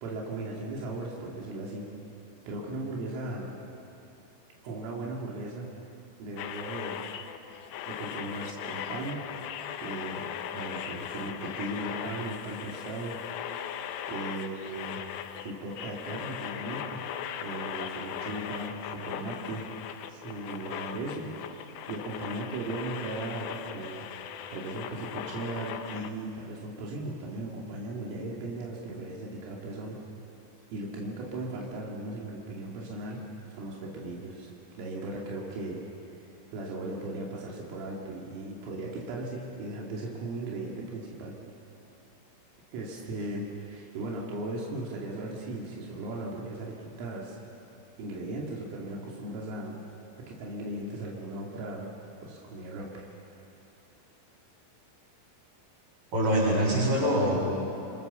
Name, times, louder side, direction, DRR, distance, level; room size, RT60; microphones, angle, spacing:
voice 1, 0.0-1.9 2.5-3.5 4.6-5.7 6.2-7.0 7.9-9.2 9.8-13.2 13.7-15.0 15.4-17.0 17.4-19.6 20.1-24.1 24.5-30.0 30.7-33.2 33.5-34.5 34.8-35.8 36.1-41.4 42.7-47.4 48.0-49.8 50.3-51.9 52.2-53.1, right 2 dB, 85° right, -3 dB, 5.1 m, -37 dB
sound 1, 6.4-26.1, left 9 dB, 75° left, 3.0 m, -39 dB
voice 2, 56.1-57.4, equal, 40° right, -4 dB, 8.9 m, -24 dB
29.5 x 25.0 x 7.0 m, 2.8 s
omnidirectional pair, 5.7 m